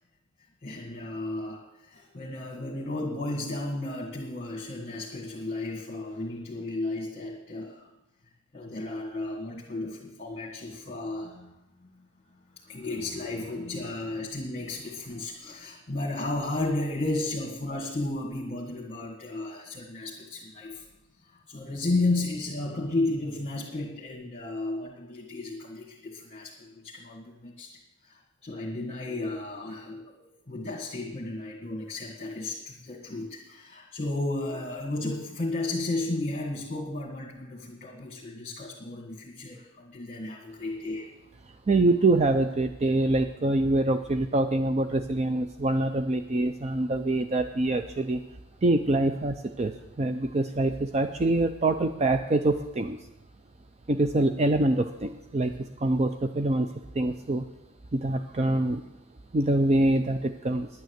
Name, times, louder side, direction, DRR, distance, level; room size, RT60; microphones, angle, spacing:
voice 1, 0.6-7.9 8.5-11.5 11.8-11.9 12.6-20.9 21.2-27.7 28.0-41.1, left 2 dB, 30° left, -3 dB, 1.9 m, -33 dB
voice 2, 41.7-48.2 48.6-49.7 50.0-53.0 53.9-57.4 57.9-58.8 59.3-60.7, right 2 dB, 30° right, 8 dB, 0.5 m, -25 dB
10.5 x 9.2 x 8.0 m, 0.94 s
head